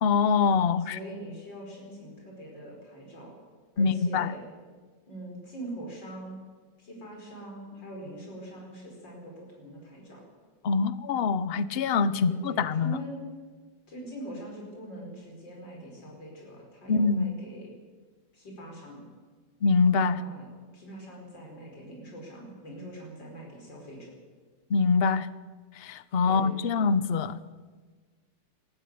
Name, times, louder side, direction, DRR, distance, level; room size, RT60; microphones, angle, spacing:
voice 1, 0.0-1.0 3.8-4.3 10.6-13.0 16.9-17.3 19.6-20.2 24.7-25.3 25.8-27.4, left 5 dB, 50° left, 15 dB, 0.8 m, -24 dB
voice 2, 0.9-3.3 3.8-4.4 5.1-6.4 6.8-10.2 12.1-13.2 13.9-17.7 18.3-19.1 20.1-20.5 20.7-24.1 26.2-26.8, right 1 dB, 80° left, -1 dB, 5.7 m, -43 dB
20.0 x 13.5 x 9.5 m, 1.4 s
omnidirectional pair, 1.9 m